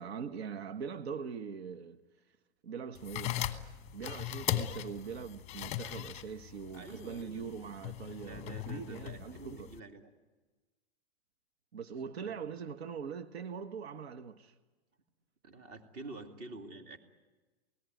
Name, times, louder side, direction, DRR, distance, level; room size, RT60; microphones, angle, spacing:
voice 1, 0.0-2.0 2.6-3.4 3.9-9.7 11.7-14.5, right 6 dB, 75° right, 1.4 m, -42 dB
sound 1, 3.0-9.8, left 12 dB, 20° left, 1.2 m, -39 dB
voice 2, 6.7-7.5 8.2-10.1 12.0-12.4 15.4-17.0, right 3 dB, 30° right, 2.6 m, -48 dB
28.0 x 19.0 x 9.4 m
hypercardioid pair, 155°, 32 cm